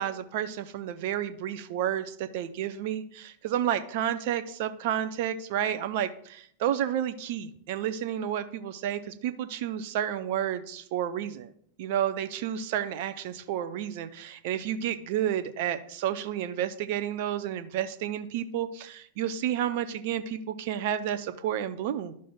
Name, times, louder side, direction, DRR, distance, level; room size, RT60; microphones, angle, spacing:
voice 1, 0.0-11.5 11.8-22.1, right 10 dB, 50° right, 11 dB, 0.6 m, -31 dB
11.5 x 6.2 x 2.3 m, 0.65 s
figure-of-eight pair, 90°, 0 cm